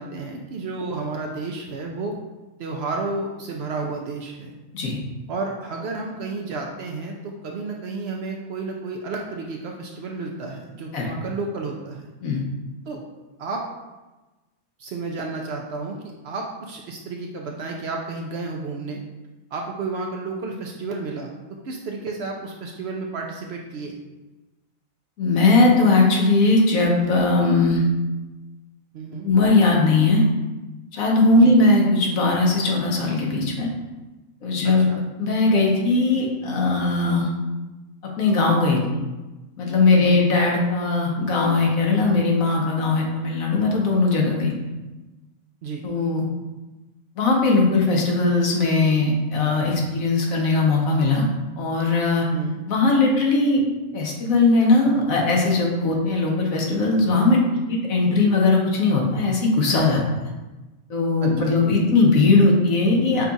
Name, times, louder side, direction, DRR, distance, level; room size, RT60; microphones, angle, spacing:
voice 1, 0.0-2.2 2.6-4.6 5.3-12.1 12.9-13.0 13.4-13.6 14.8-16.0 16.2-19.0 19.5-21.3 21.6-24.0 28.9-29.3 31.3-31.6 34.6-35.0 39.9-40.3 45.6-45.8 52.3-52.6 61.2-61.5, right 3 dB, 65° right, 1 dB, 0.7 m, -31 dB
voice 2, 25.2-27.8 29.2-30.2 30.9-33.7 34.4-34.9 35.2-37.3 38.2-38.8 39.6-44.5 45.8-46.2 47.2-51.3 51.6-52.2 52.7-53.6 53.9-57.4 57.7-60.0 60.9-63.3, left 3 dB, 80° left, -1 dB, 1.3 m, -19 dB
5.5 x 2.4 x 3.9 m, 1.1 s
omnidirectional pair, 1.4 m